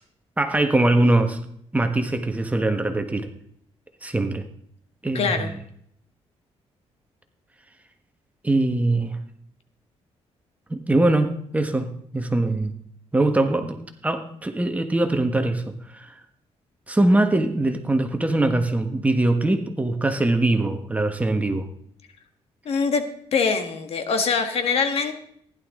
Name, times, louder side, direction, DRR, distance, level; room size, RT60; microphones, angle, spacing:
voice 1, 0.4-1.4 1.7-3.3 4.0-4.4 5.0-5.6 8.4-9.2 10.7-12.8 13.1-15.6 15.9-16.1 16.9-21.7, right 2 dB, 15° right, 6 dB, 1.5 m, -22 dB
voice 2, 5.1-5.5 22.7-23.1 23.3-25.1, left 5 dB, 65° left, 7 dB, 1.7 m, -23 dB
15.5 x 11.0 x 3.8 m, 0.67 s
cardioid pair, 110°, 11 cm